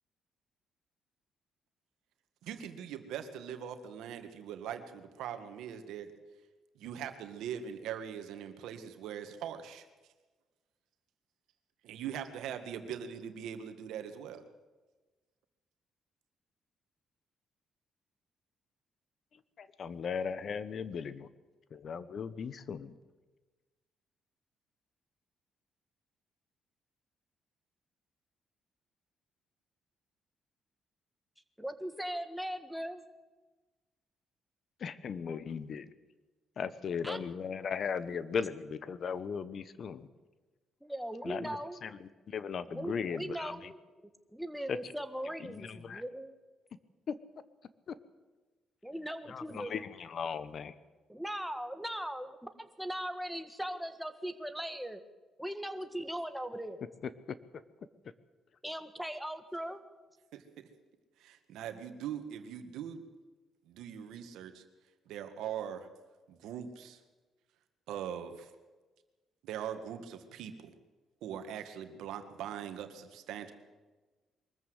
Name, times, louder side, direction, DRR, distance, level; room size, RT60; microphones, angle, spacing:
voice 1, 2.4-6.1 6.8-9.8 11.9-14.4 60.3-60.4 61.2-63.0 63.7-64.6 65.1-65.9 66.3-67.0 67.9-68.5 69.4-70.5 71.2-73.5, right 9 dB, 85° right, 8 dB, 1.9 m, -41 dB
voice 2, 19.8-21.3 21.8-22.9 34.8-35.9 36.6-40.0 41.2-41.6 41.8-41.9 42.3-43.5 45.6-46.0 49.3-50.7, left 6 dB, 55° left, 15 dB, 1.1 m, -37 dB
voice 3, 31.6-33.0 37.0-37.2 40.8-41.8 42.7-43.8 44.3-46.3 48.8-49.8 51.1-52.4 52.8-55.0 55.4-56.8 58.6-59.8, equal, ahead, 8 dB, 1.8 m, -39 dB
22.5 x 14.0 x 8.1 m, 1.3 s
cardioid pair, 90°, 0 cm